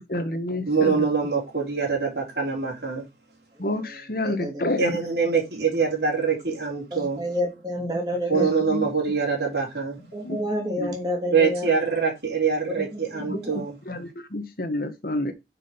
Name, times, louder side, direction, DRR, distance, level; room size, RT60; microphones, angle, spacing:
voice 1, 0.1-1.0 3.6-4.9 7.8-7.9 8.3-8.9 10.2-10.4 10.8-11.0 13.2-13.4 13.9-15.3, left 1 dB, 55° left, 1.4 m, -29 dB
voice 2, 0.7-3.0 4.8-7.2 8.3-10.0 11.3-13.7, right 5 dB, 70° right, 3.5 m, -24 dB
voice 3, 4.2-4.6 6.9-8.5 10.1-11.7 12.7-13.6, left 1 dB, 25° right, 2.9 m, -29 dB
6.2 x 6.1 x 5.2 m
head